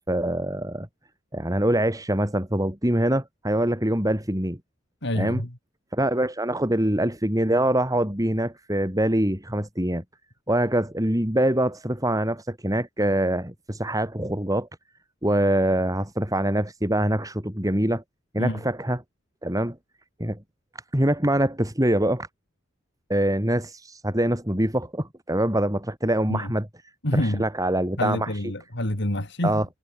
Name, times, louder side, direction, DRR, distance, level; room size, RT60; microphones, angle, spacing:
voice 1, 0.1-0.9 1.3-4.6 5.1-5.4 5.9-10.0 10.5-14.7 15.2-18.0 18.3-19.0 19.4-19.8 20.2-20.4 20.9-22.3 23.1-26.7 27.1-28.3 29.4-29.6, right 1 dB, 20° right, 5.1 m, -24 dB
voice 2, 5.0-5.6 18.4-18.6 26.3-26.5 27.0-27.4 28.0-29.6, left 1 dB, 65° left, 4.0 m, -27 dB
head